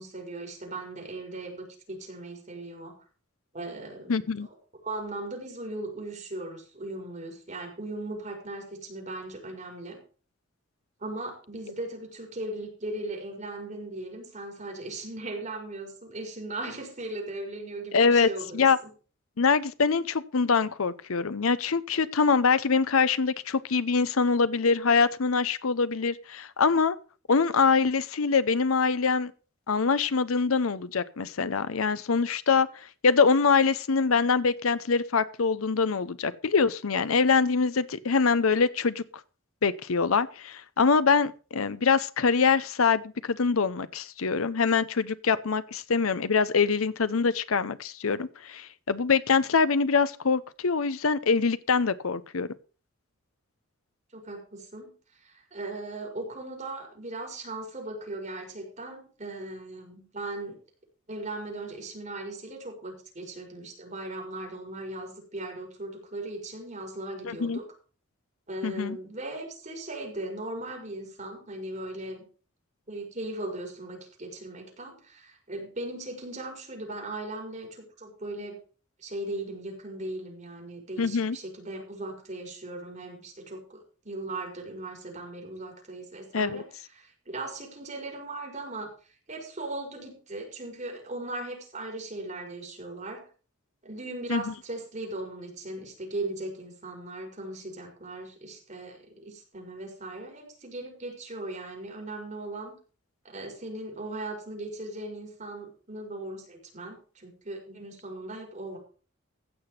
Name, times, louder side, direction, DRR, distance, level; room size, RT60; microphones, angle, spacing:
voice 1, 0.0-3.0 3.5-4.5 4.8-10.0 11.0-18.7 54.1-54.9 55.2-60.6 61.1-67.7 68.5-72.2 72.9-78.6 79.0-86.7 87.0-88.9 89.3-93.3 93.8-102.7 103.2-108.8, right 2 dB, 35° right, 5.4 m, -38 dB
voice 2, 4.1-4.5 17.9-18.3 18.5-18.8 19.4-27.0 27.3-29.3 29.7-32.7 33.0-39.0 39.6-52.5 67.2-67.6 68.6-69.0 81.0-81.4 86.3-86.6 94.3-94.4, left 5 dB, 90° left, 0.7 m, -24 dB
15.5 x 6.0 x 6.6 m
head